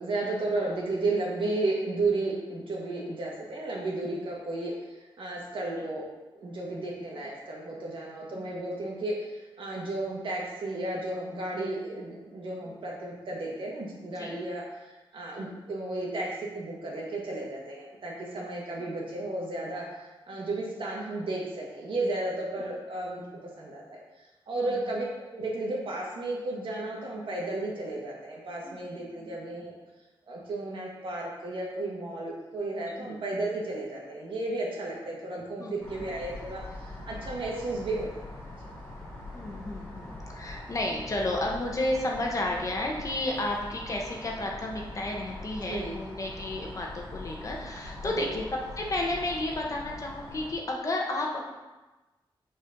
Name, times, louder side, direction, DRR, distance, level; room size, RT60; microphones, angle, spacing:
voice 1, 0.0-6.0 6.4-23.2 23.6-25.1 25.3-29.7 30.3-38.2 45.7-46.0 48.1-48.3, right 2 dB, 70° right, -3 dB, 1.8 m, -33 dB
voice 2, 28.6-29.2 33.0-33.2 35.6-36.1 39.3-48.4 48.8-51.5, left 1 dB, 35° left, 0 dB, 1.1 m, -32 dB
sound 1, 35.8-50.5, left 2 dB, 20° left, 2.3 m, -42 dB
6.4 x 4.3 x 5.2 m, 1.1 s
wide cardioid pair, 150°, 9 cm